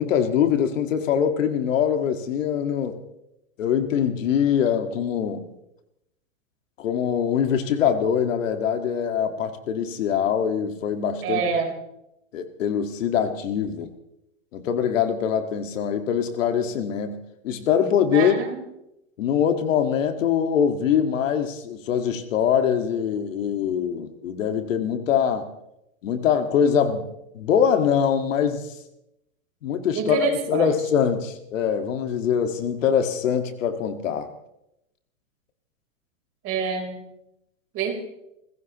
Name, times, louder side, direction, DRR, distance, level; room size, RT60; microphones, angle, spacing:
voice 1, 0.0-3.0 3.6-5.4 6.8-11.4 12.3-13.9 14.5-17.2 17.4-18.4 19.2-25.4 26.0-27.1 27.3-28.7 29.6-34.3, left 8 dB, 70° left, 7 dB, 1.9 m, -23 dB
voice 2, 11.2-11.7 18.1-18.6 30.0-30.7 36.4-37.0 37.7-38.0, right 5 dB, 35° right, 3 dB, 3.9 m, -26 dB
29.5 x 16.0 x 3.0 m, 0.85 s
hypercardioid pair, 135°, 39 cm